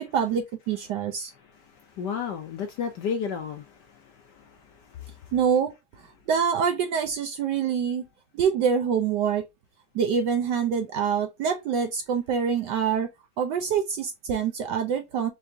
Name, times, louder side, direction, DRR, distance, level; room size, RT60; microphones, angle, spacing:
voice 1, 0.0-1.3 5.3-5.7 6.3-8.0 8.3-9.4 9.9-13.1 13.4-15.3, right 7 dB, 75° right, 1.0 m, -25 dB
voice 2, 2.0-4.6 5.0-5.1, left 7 dB, 70° left, 1.0 m, -32 dB
4.8 x 3.4 x 2.6 m
omnidirectional pair, 2.4 m